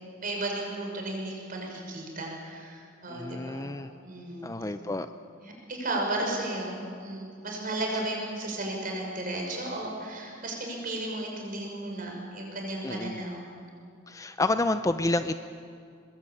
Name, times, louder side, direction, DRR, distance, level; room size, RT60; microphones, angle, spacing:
voice 1, 0.2-3.7 4.0-4.5 5.4-13.5, right 2 dB, 45° right, 0 dB, 6.2 m, -34 dB
voice 2, 3.1-3.9 4.4-5.1 12.8-13.2 14.1-15.3, left 2 dB, 15° left, 10 dB, 0.5 m, -29 dB
23.5 x 21.0 x 8.6 m, 2.3 s
head